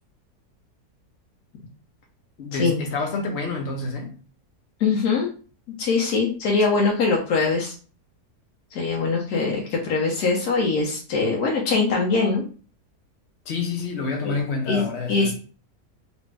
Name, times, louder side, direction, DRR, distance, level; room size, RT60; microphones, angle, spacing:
voice 1, 2.4-4.2 13.5-15.3, left 4 dB, 55° left, 0.8 m, -28 dB
voice 2, 4.8-5.3 5.8-7.7 8.7-12.4 14.2-14.3 14.7-15.3, left 4 dB, 80° left, 1.2 m, -22 dB
3.0 x 2.5 x 3.2 m
omnidirectional pair, 1.7 m